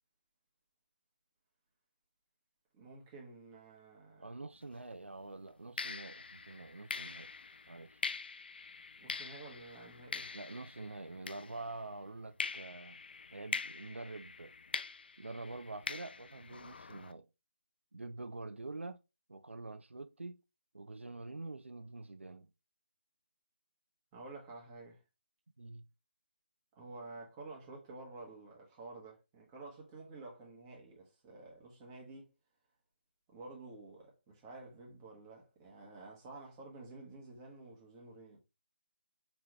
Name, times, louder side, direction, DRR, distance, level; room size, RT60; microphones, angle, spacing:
voice 1, 2.7-4.3 9.0-10.3 24.1-25.0 26.7-32.3 33.3-38.4, right 3 dB, 20° right, 1.5 m, -51 dB
voice 2, 4.2-7.3 7.7-8.0 10.3-13.0 13.3-14.5 15.2-17.3 17.9-19.0 19.3-20.4 20.7-22.5 25.6-25.9, right 2 dB, 85° right, 0.4 m, -46 dB
sound 1, 4.6-4.8 5.8-11.9 12.4-17.1, left 5 dB, 55° left, 0.4 m, -44 dB
4.9 x 3.4 x 3.2 m
figure-of-eight pair, 155°, 6 cm